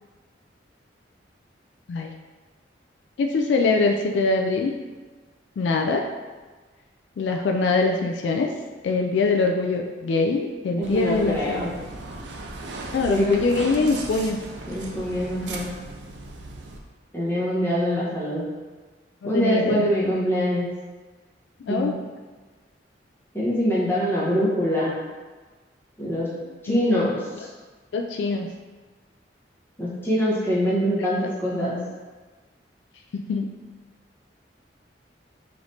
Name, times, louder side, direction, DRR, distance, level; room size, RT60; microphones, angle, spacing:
voice 1, 3.2-4.7 5.6-6.1 7.2-8.5 8.8-11.7 12.9-14.4 19.2-20.1 21.6-22.0 26.7-27.1 27.9-28.5 30.6-30.7 31.0-31.1 33.1-33.5, left 3 dB, 70° left, 3 dB, 0.3 m, -23 dB
voice 2, 10.8-11.7 13.1-13.4 14.7-15.7 17.1-18.4 19.2-20.7 21.7-21.9 23.3-25.0 26.0-26.3 26.6-27.5 29.8-31.8, equal, 10° left, -8 dB, 1.0 m, -24 dB
sound 1, 10.8-16.8, right 2 dB, 65° right, 0.5 m, -37 dB
4.9 x 3.2 x 2.7 m, 1.3 s
head